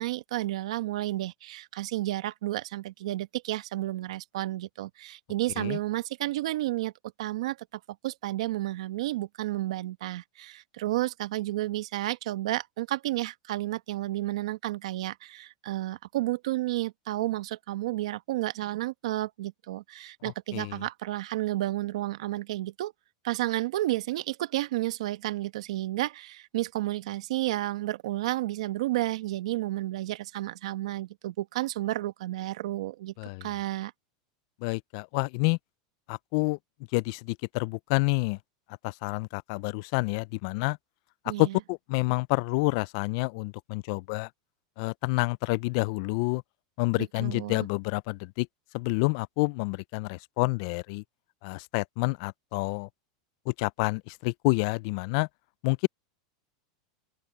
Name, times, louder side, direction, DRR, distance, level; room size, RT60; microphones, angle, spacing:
voice 1, 0.0-6.9 7.2-7.6 8.0-22.9 23.2-33.1 33.4-33.9 41.2-41.6 47.0-47.7, right 16 dB, 75° right, 1.2 m, -31 dB
voice 2, 34.6-35.6 36.1-36.6 36.9-38.4 38.8-40.8 41.4-44.3 44.8-46.4 46.8-48.5 48.7-51.0 51.4-52.9 53.5-55.3 55.6-55.9, left 27 dB, 55° left, 0.3 m, -28 dB
open air
supercardioid pair, 140°, 3 cm